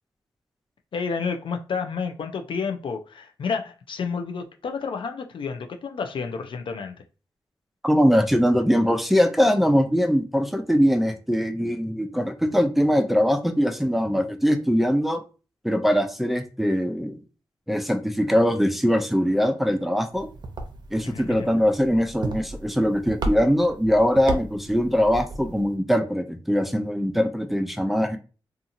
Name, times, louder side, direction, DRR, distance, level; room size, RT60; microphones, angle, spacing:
voice 1, 0.9-7.0 21.0-21.5, left 5 dB, 70° left, 0.4 m, -30 dB
voice 2, 7.8-15.2 15.6-17.2 17.7-20.3 20.9-28.2, equal, ahead, 0.5 m, -22 dB
sound 1, 20.1-25.7, right 2 dB, 55° right, 0.7 m, -34 dB
2.7 x 2.4 x 2.6 m
cardioid pair, 55°, 9 cm